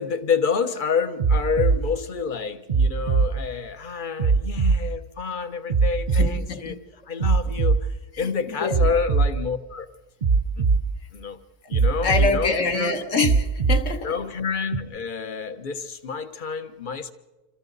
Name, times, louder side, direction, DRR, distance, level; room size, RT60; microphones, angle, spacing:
voice 1, 0.0-6.8 7.1-9.9 10.6-10.7 11.1-11.4 11.7-13.0 14.0-17.1, left 6 dB, 35° left, 1.0 m, -28 dB
sound 1, 1.2-1.8 2.7-3.3 4.2-4.8 5.7-6.3 7.2-7.8 8.7-9.3 10.2-10.8 11.7-12.3 13.2-13.8 14.7-14.8, right 4 dB, 45° right, 0.6 m, -19 dB
voice 2, 6.1-6.8 8.5-8.9 12.0-14.1, left 4 dB, 55° left, 1.6 m, -25 dB
27.0 x 26.5 x 4.0 m
omnidirectional pair, 1.6 m